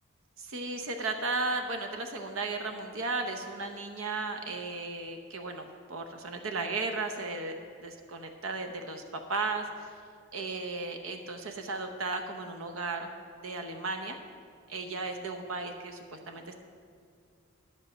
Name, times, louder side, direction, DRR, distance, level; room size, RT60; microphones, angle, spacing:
voice 1, 0.4-9.9 10.3-13.1 13.4-14.2 14.7-16.6, right 3 dB, 80° right, 5 dB, 0.8 m, -35 dB
11.0 x 5.3 x 7.4 m, 2.2 s
head